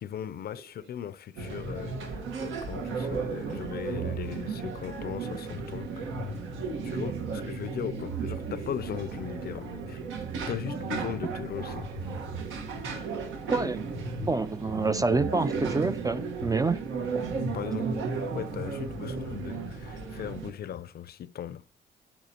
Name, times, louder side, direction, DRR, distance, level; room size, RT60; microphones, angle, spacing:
voice 1, 0.0-6.1 6.8-10.0 10.5-11.9 17.3-21.7, left 9 dB, 50° left, 0.5 m, -38 dB
sound 1, 0.5-1.0 1.5-2.7 3.0-3.5 4.2-5.1 5.3-5.6 7.6-12.5, right 5 dB, 60° right, 3.1 m, -56 dB
sound 2, 1.4-20.5, right 4 dB, 80° right, 1.3 m, -34 dB
voice 2, 13.5-13.8 14.2-16.8, right 3 dB, 20° right, 0.4 m, -27 dB
10.5 x 8.9 x 2.8 m
cardioid pair, 90°, 20 cm